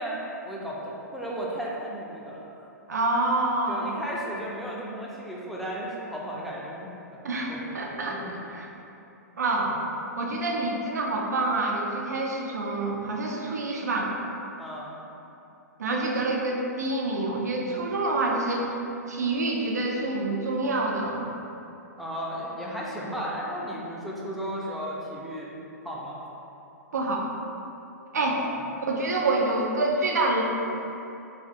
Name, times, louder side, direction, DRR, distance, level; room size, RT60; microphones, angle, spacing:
voice 1, 0.0-2.6 3.7-7.2 7.5-7.8 8.1-8.3 14.6-15.0 22.0-25.5 25.8-26.2 28.2-28.6, equal, ahead, -6 dB, 0.4 m, -35 dB
voice 2, 2.9-4.0 7.2-8.7 9.4-9.8 10.2-14.1 15.8-18.7 19.1-21.3 26.9-27.3 28.1-28.4 28.9-30.4, right 2 dB, 75° right, -1 dB, 0.4 m, -27 dB
2.4 x 2.4 x 2.6 m, 2.8 s
figure-of-eight pair, 115°, 9 cm